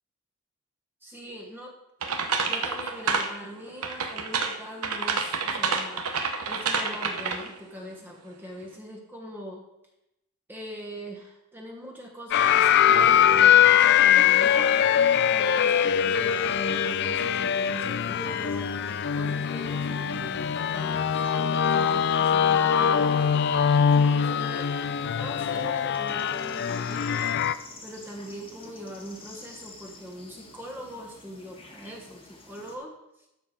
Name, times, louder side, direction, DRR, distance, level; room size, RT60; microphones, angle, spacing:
voice 1, 1.0-1.7 2.5-6.0 6.5-9.6 10.5-18.8 19.2-23.2 23.9-27.4 27.8-32.9, equal, 10° right, -1 dB, 1.2 m, -41 dB
sound 1, 2.0-3.4 3.8-7.6, right 5 dB, 80° right, 1.0 m, -28 dB
sound 2, 12.3-27.5, left 8 dB, 50° left, 0.3 m, -22 dB
sound 3, 14.0-32.8, left 1 dB, 25° left, 1.4 m, -49 dB
12.5 x 4.7 x 5.1 m, 0.87 s
head